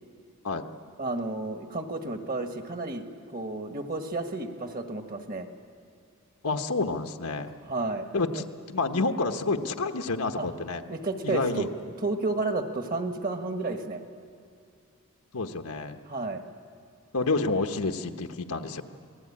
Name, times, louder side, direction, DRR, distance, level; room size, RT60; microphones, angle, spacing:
voice 1, 1.0-3.1 3.3-5.5 7.7-8.1 8.3-8.4 10.4-10.5 10.9-11.7 12.0-14.0 16.1-16.4, right 3 dB, 40° right, 6 dB, 1.6 m, -31 dB
voice 2, 6.4-7.5 8.1-10.8 11.2-11.7 15.3-16.0 17.1-18.8, left 3 dB, 85° left, 4 dB, 1.1 m, -29 dB
27.5 x 19.0 x 8.6 m, 2.4 s
head